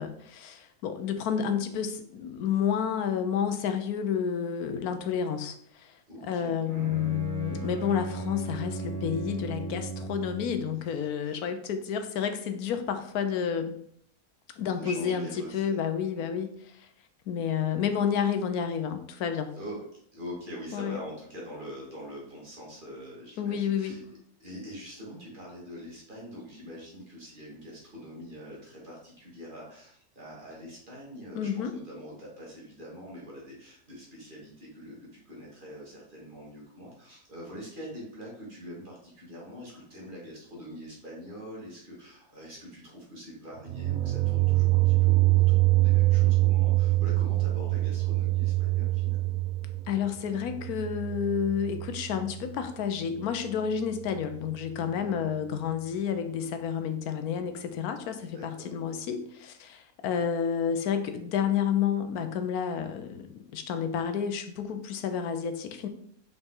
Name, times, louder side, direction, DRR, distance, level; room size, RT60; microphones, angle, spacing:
voice 1, 0.0-5.9 6.2-13.8 14.6-16.9 17.3-19.5 20.7-21.0 23.4-24.0 31.3-31.7 49.9-65.9, left 7 dB, 75° left, 8 dB, 1.2 m, -30 dB
voice 2, 6.1-6.6 11.2-11.4 14.8-15.8 16.1-16.3 19.5-19.9 20.1-24.0 24.4-49.4 54.8-55.2 58.2-58.7, equal, 35° right, -4 dB, 2.3 m, -44 dB
Bowed string instrument, 6.6-10.7, right 4 dB, 15° right, 1.0 m, -37 dB
sound 1, 43.6-52.5, right 19 dB, 70° right, 0.9 m, -25 dB
5.4 x 5.3 x 3.8 m, 0.66 s
omnidirectional pair, 1.6 m